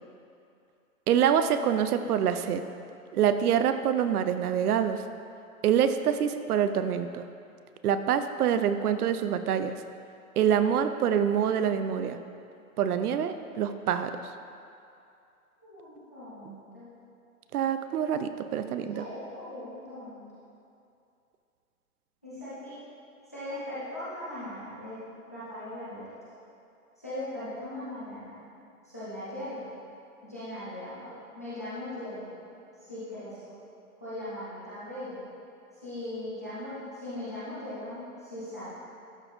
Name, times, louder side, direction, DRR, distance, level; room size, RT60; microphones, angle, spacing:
voice 1, 1.1-2.6 3.1-5.0 5.6-7.2 7.8-9.8 10.4-12.2 12.8-14.1 17.5-19.0, right 8 dB, 75° right, 10 dB, 0.6 m, -26 dB
voice 2, 15.6-16.9 18.9-20.2 22.2-22.8 23.3-26.1 27.0-28.4 28.8-29.7 30.2-32.3 32.8-33.6 34.0-35.2 35.7-38.7, left 1 dB, 15° left, -12 dB, 0.3 m, -39 dB
12.0 x 4.1 x 3.1 m, 2.6 s
hypercardioid pair, 145°, 45 cm